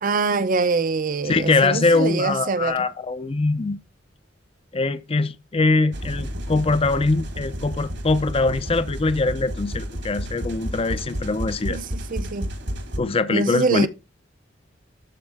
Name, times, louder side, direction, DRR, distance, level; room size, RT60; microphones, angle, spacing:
voice 1, 0.0-2.9 11.7-12.5 13.3-13.9, right 4 dB, 45° right, 0.6 m, -24 dB
voice 2, 1.3-3.8 4.7-11.8 13.0-13.9, left 3 dB, 30° left, 0.5 m, -22 dB
sound 1, 5.9-13.0, equal, 60° right, 1.7 m, -31 dB
12.5 x 4.3 x 3.5 m
head